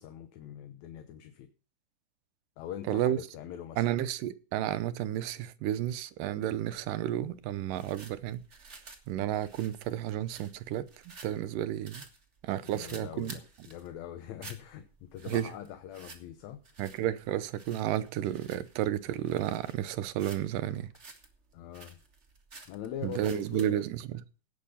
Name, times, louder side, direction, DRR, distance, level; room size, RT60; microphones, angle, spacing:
voice 1, 0.0-1.5 2.6-3.9 12.6-16.6 21.5-22.0 22.7-23.9, left 10 dB, 70° left, 2.0 m, -43 dB
voice 2, 2.9-3.2 3.8-8.4 9.1-12.1 12.4-13.4 15.3-15.5 16.8-20.9 23.0-24.2, right 12 dB, 90° right, 2.4 m, -32 dB
sound 1, 6.6-23.7, right 3 dB, 30° right, 1.4 m, -52 dB
17.0 x 6.7 x 5.6 m
omnidirectional pair, 3.7 m